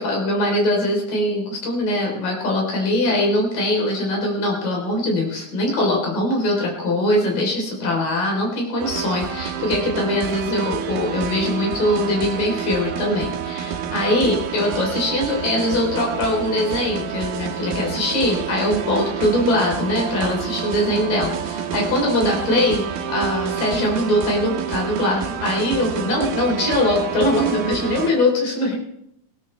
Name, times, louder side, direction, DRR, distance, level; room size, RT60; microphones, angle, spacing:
voice 1, 0.0-22.8 23.1-28.8, left 1 dB, 65° left, -1 dB, 5.3 m, -22 dB
sound 1, 8.8-28.1, right 8 dB, 85° right, 3.0 m, -29 dB
19.0 x 16.5 x 3.3 m, 0.78 s
omnidirectional pair, 4.1 m